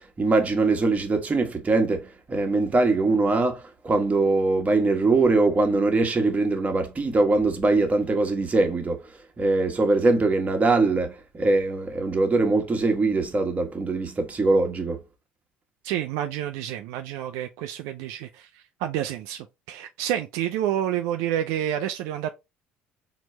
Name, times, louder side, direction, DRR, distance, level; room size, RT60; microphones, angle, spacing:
voice 1, 0.0-9.0 9.4-15.0, right 3 dB, 25° right, 1.4 m, -22 dB
voice 2, 15.8-18.5 18.8-22.3, right 11 dB, 70° right, 0.4 m, -29 dB
4.3 x 3.0 x 3.1 m
hypercardioid pair, 65°, 5 cm